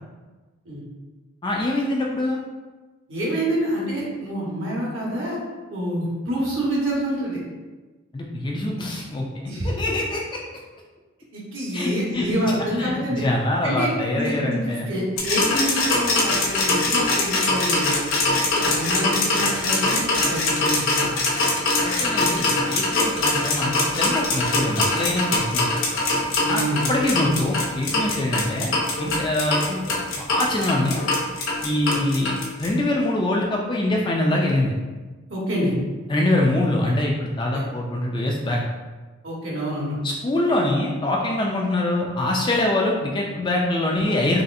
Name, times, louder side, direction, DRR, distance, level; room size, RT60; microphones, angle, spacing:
voice 1, 1.4-2.4 8.1-9.2 9.6-10.2 11.7-12.3 12.8-14.9 21.8-25.7 26.4-26.6 26.9-31.0 31.6-32.3 32.6-34.7 36.1-38.6 40.0-44.4, left 1 dB, 20° left, -1 dB, 0.3 m, -24 dB
voice 2, 3.1-5.4 5.7-7.4 9.4-9.8 11.3-13.2 13.6-18.0 18.5-21.2 26.4-26.9 31.9-32.0 35.3-35.7 37.5-37.6 39.2-39.9, equal, 60° right, -4 dB, 1.2 m, -27 dB
sound 1, 15.2-32.7, left 2 dB, 65° left, 0.9 m, -22 dB
4.1 x 3.1 x 2.6 m, 1.3 s
head